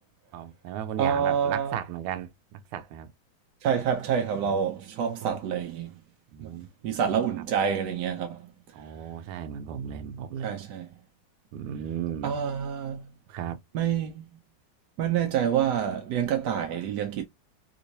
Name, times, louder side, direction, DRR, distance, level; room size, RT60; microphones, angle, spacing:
voice 1, 0.3-3.1 4.4-4.6 4.9-5.4 6.3-6.7 8.7-10.5 11.5-12.4 13.3-13.6, right 9 dB, 90° right, 1.5 m, -35 dB
voice 2, 1.0-1.8 3.6-5.9 6.4-6.5 6.8-8.5 10.4-10.9 12.2-13.1 13.7-14.3 15.0-17.2, right 8 dB, 70° right, 1.0 m, -27 dB
3.5 x 3.0 x 2.6 m
omnidirectional pair, 2.3 m